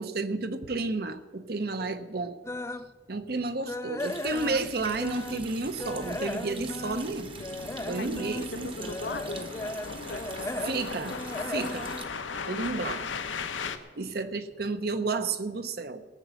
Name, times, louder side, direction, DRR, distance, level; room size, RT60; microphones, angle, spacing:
voice 1, 0.0-2.4 3.1-7.3 7.9-8.7 10.6-11.2 11.5-11.9 12.5-13.1 14.0-16.0, right 3 dB, 55° right, 10 dB, 0.7 m, -31 dB
sound 1, 2.4-2.9 3.3-5.5 5.8-13.0 13.4-13.6 14.1-14.2 14.6-14.7, left 2 dB, 15° left, 0.3 m, -37 dB
Water tap faucet, 4.0-12.0, right 5 dB, 30° right, 1.0 m, -45 dB
sound 2, 4.3-13.8, left 4 dB, 90° left, 0.9 m, -39 dB
voice 2, 8.5-10.3 12.4-13.4, left 3 dB, 65° left, 7 dB, 1.0 m, -41 dB
17.5 x 7.1 x 7.6 m, 1.4 s
head